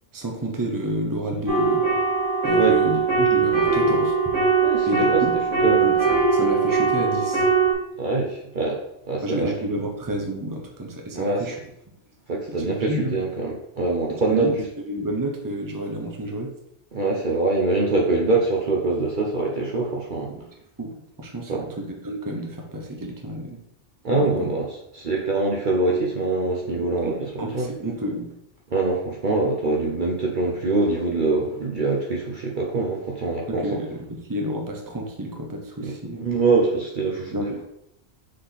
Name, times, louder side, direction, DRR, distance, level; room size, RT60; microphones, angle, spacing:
voice 1, 0.1-1.8 2.4-4.1 4.9-5.3 5.8-7.5 9.2-11.6 12.5-13.2 14.1-14.6 14.8-16.5 20.3-20.4 20.8-20.9 21.2-23.6 24.1-24.5 26.8-28.3 33.5-36.2 37.3-37.6, right 1 dB, 20° right, 1 dB, 0.9 m, -30 dB
sound 1, 1.5-7.7, right 5 dB, 85° right, 3.0 m, -20 dB
voice 2, 4.6-5.2 5.6-5.9 8.0-8.8 9.1-9.5 11.1-11.4 12.3-14.6 16.9-20.3 21.5-21.7 24.0-24.7 25.0-27.3 27.5-27.7 28.7-33.7 35.8-35.9 36.2-37.6, right 3 dB, 45° right, -1 dB, 0.9 m, -24 dB
6.6 x 3.8 x 4.0 m, 0.78 s
omnidirectional pair, 1.2 m